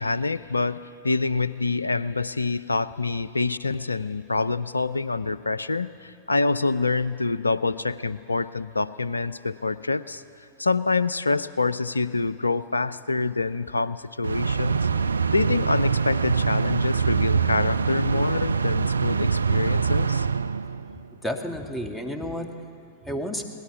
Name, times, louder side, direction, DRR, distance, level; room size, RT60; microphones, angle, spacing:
voice 1, 0.0-10.2 10.6-14.9 15.3-20.3, left 3 dB, 85° left, 17 dB, 0.5 m, -26 dB
sound 1, 14.2-21.0, right 5 dB, 80° right, 0.4 m, -24 dB
voice 2, 20.9-23.5, equal, 5° left, 5 dB, 1.7 m, -32 dB
22.0 x 18.0 x 7.1 m, 2.7 s
figure-of-eight pair, 95°, 0 cm